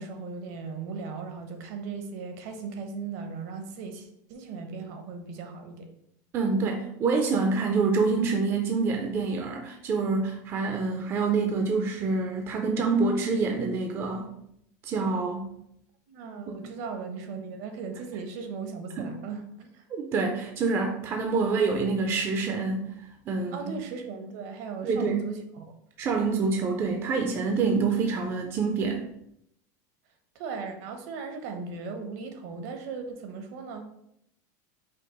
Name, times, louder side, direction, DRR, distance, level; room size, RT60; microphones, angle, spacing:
voice 1, 0.0-5.9 16.1-19.8 23.5-25.7 30.3-33.9, right 5 dB, 60° right, 5 dB, 0.8 m, -37 dB
voice 2, 6.3-14.3 14.8-15.5 16.6-16.7 19.0-19.1 19.9-22.9 23.3-23.8 24.8-25.2 26.0-29.0, right 4 dB, 25° right, 3 dB, 0.4 m, -26 dB
5.3 x 2.0 x 3.9 m, 0.75 s
supercardioid pair, 155°, 9 cm